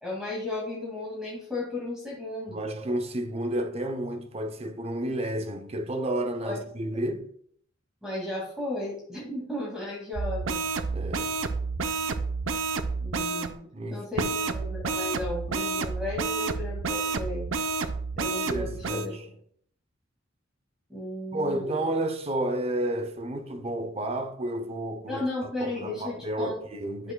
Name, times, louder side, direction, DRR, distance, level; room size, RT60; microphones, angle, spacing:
voice 1, 0.0-2.6 6.4-6.6 8.0-10.6 13.0-13.6 13.9-17.5 18.2-19.1 20.9-21.8 25.1-26.6 27.0-27.1, left 2 dB, 5° right, 2.0 m, -34 dB
voice 2, 2.5-7.3 10.9-11.4 13.7-14.5 18.2-19.3 21.3-27.1, right 1 dB, 30° right, 0.7 m, -31 dB
sound 1, 10.1-13.5 14.2-19.1, right 4 dB, 85° right, 0.6 m, -30 dB
11.0 x 6.7 x 2.2 m
head